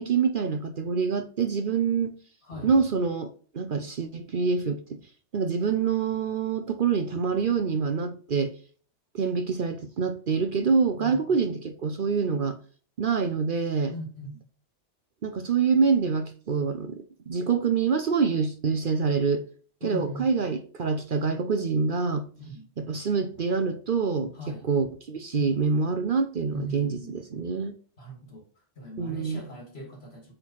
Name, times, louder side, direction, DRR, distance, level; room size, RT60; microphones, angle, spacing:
voice 1, 0.0-2.2 2.6-5.0 5.3-8.5 9.1-12.6 13.0-13.9 15.2-19.4 19.8-22.3 22.8-27.8 29.0-29.4, right 5 dB, 50° right, 0.8 m, -26 dB
voice 2, 11.0-11.4 13.9-14.4 19.8-20.3 22.4-22.7 24.3-24.6 26.5-27.2 28.0-28.4 28.8-30.3, equal, 60° left, 2.8 m, -39 dB
8.4 x 3.9 x 4.6 m
omnidirectional pair, 1.2 m